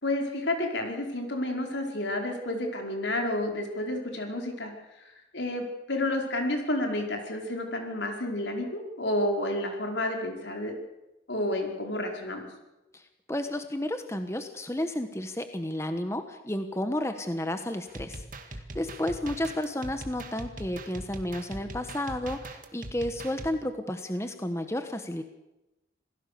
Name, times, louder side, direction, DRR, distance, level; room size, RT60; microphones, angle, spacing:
voice 1, 0.0-4.7 5.3-10.7 11.3-12.5, left 1 dB, 75° left, 2 dB, 5.1 m, -30 dB
voice 2, 12.9-25.2, left 1 dB, 15° left, 7 dB, 1.2 m, -32 dB
sound 1, 17.9-23.5, right 2 dB, 45° right, 2.1 m, -41 dB
27.0 x 17.5 x 7.0 m, 0.96 s
head